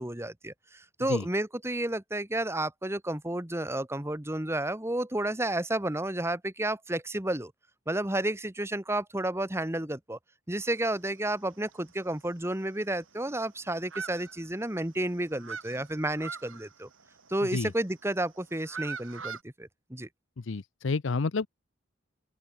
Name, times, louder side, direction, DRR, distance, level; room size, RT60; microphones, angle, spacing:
voice 1, 0.0-7.5 7.9-10.2 10.5-16.9 17.3-20.1, right 1 dB, 15° right, 1.4 m, -31 dB
sound 1, 10.6-11.3 11.7-11.8 12.1-12.2 12.5-13.4 13.8-14.9 15.1-17.7 18.3-19.4, right 5 dB, 85° right, 7.9 m, -42 dB
voice 2, 20.4-21.5, left 4 dB, 75° left, 0.6 m, -30 dB
open air
head